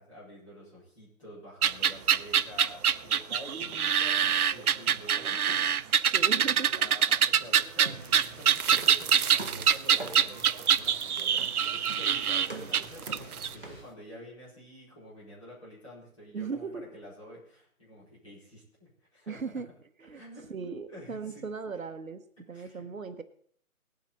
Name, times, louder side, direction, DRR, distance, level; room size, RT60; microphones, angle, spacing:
voice 1, 0.0-4.2 4.5-6.0 6.3-19.6 20.1-20.5 20.9-21.4 22.5-22.8, left 1 dB, 20° left, -8 dB, 4.4 m, -49 dB
sound 1, 1.6-13.5, right 8 dB, 85° right, 0.6 m, -25 dB
sound 2, 3.6-5.9 6.1-13.9, right 2 dB, 40° right, 1.1 m, -47 dB
voice 2, 6.0-6.8 16.3-16.8 19.3-19.7 20.0-20.2 20.5-22.2 22.5-23.2, right 5 dB, 65° right, 8 dB, 1.0 m, -37 dB
sound 3, 7.8-13.8, right 1 dB, 5° left, 5.2 m, -51 dB
18.5 x 9.1 x 4.2 m, 0.63 s
hypercardioid pair, 180°, 43 cm